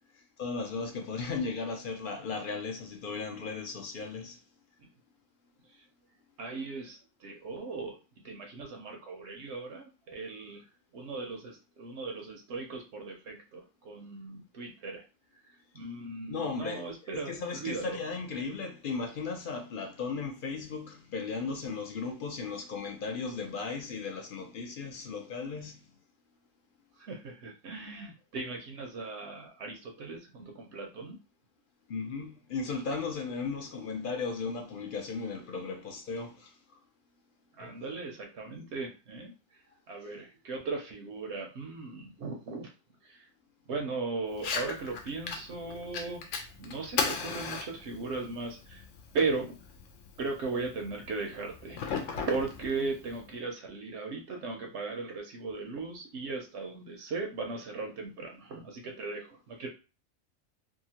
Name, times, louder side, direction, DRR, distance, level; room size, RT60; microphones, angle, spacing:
voice 1, 0.1-4.4 16.3-25.9 31.9-36.6 37.6-37.8, left 4 dB, 60° left, 0.5 m, -36 dB
voice 2, 6.4-8.0 8.2-15.0 15.3-18.0 27.0-31.2 37.6-42.7 43.0-43.3 43.7-46.2 46.6-48.9 49.1-49.6 50.2-59.7, right 3 dB, 70° right, 0.9 m, -37 dB
Fire, 44.3-53.3, left 5 dB, 80° left, 1.0 m, -38 dB
2.8 x 2.5 x 2.8 m
omnidirectional pair, 1.3 m